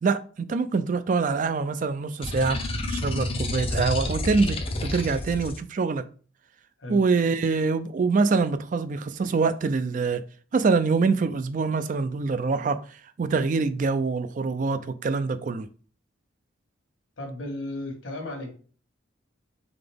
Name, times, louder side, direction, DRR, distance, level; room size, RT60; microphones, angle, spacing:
voice 1, 0.0-2.6 2.9-6.0 6.9-10.2 10.5-15.7, right 4 dB, 40° right, 0.3 m, -25 dB
sound 1, 2.2-5.6, left 2 dB, 30° left, 0.5 m, -29 dB
voice 2, 17.2-18.5, left 1 dB, 75° left, 1.3 m, -34 dB
3.9 x 3.8 x 3.4 m
head